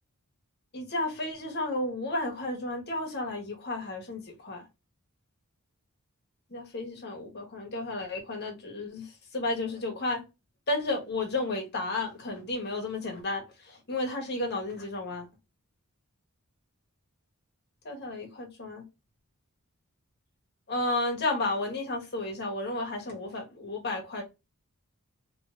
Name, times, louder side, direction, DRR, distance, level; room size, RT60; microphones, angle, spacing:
voice 1, 0.7-4.7 6.5-10.2 10.7-15.3 17.8-18.8 20.7-24.2, left 2 dB, 50° left, 1.1 m, -32 dB
3.2 x 3.0 x 2.5 m
head